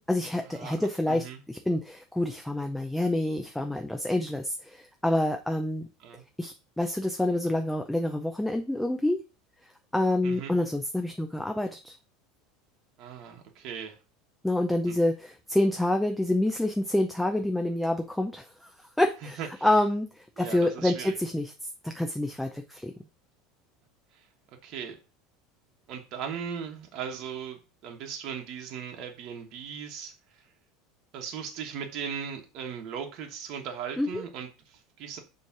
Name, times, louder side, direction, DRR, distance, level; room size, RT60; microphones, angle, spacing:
voice 1, 0.0-5.9 6.4-9.2 9.9-11.9 14.4-18.5 19.0-21.5 21.8-22.9 34.0-34.2, left 1 dB, 5° left, 5 dB, 0.4 m, -27 dB
voice 2, 1.1-1.4 6.0-6.2 10.2-10.5 13.0-14.0 14.8-15.0 19.4-19.7 20.4-21.2 24.6-25.0 25.9-30.1 31.1-35.2, right 7 dB, 40° right, 3 dB, 1.2 m, -38 dB
7.0 x 3.2 x 5.9 m, 0.30 s
cardioid pair, 175°, 0 cm